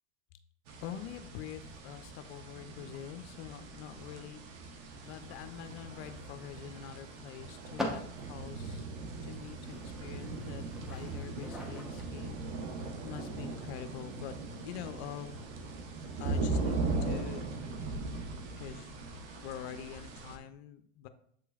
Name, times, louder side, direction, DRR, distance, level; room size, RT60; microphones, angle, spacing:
sound 1, 0.7-20.4, right 3 dB, 85° right, 0.8 m, -39 dB
voice 1, 0.8-4.4 5.0-8.9 9.2-14.3 14.6-15.4 16.2-17.5 18.6-18.9 19.4-21.1, left 10 dB, 75° left, 10 dB, 0.5 m, -45 dB
sound 2, 5.0-16.5, left 1 dB, ahead, 0.8 m, -47 dB
7.4 x 3.1 x 2.3 m, 0.66 s
supercardioid pair, 100°, 33 cm